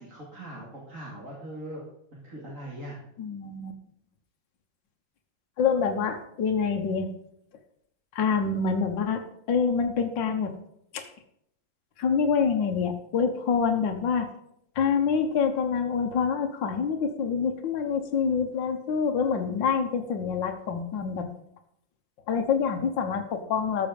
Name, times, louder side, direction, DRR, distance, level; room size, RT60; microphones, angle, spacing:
voice 1, 0.0-1.8 2.1-3.0, right 1 dB, 40° right, -5 dB, 2.9 m, -40 dB
voice 2, 3.2-3.7 5.6-7.1 8.1-9.2 9.5-10.5 10.9-11.0 12.0-14.3 14.8-21.3 22.3-23.9, left 6 dB, 70° left, 5 dB, 1.9 m, -26 dB
13.5 x 6.3 x 5.2 m, 0.73 s
omnidirectional pair, 2.1 m